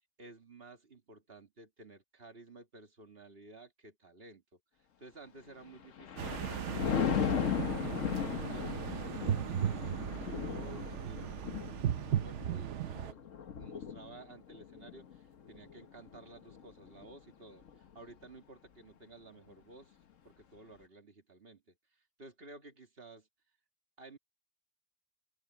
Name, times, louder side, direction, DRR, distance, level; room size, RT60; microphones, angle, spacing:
voice 1, 0.2-4.6 5.0-6.3 6.7-9.8 10.2-13.3 13.6-20.0 20.2-21.8 22.2-23.3 24.0-24.2, right 2 dB, 50° right, 2.4 m, -54 dB
Thunder, 5.7-17.2 17.6-17.9, left 8 dB, 85° left, 1.5 m, -37 dB
sound 1, 6.2-13.1, right 10 dB, 70° right, 1.0 m, -36 dB
open air
omnidirectional pair, 1.3 m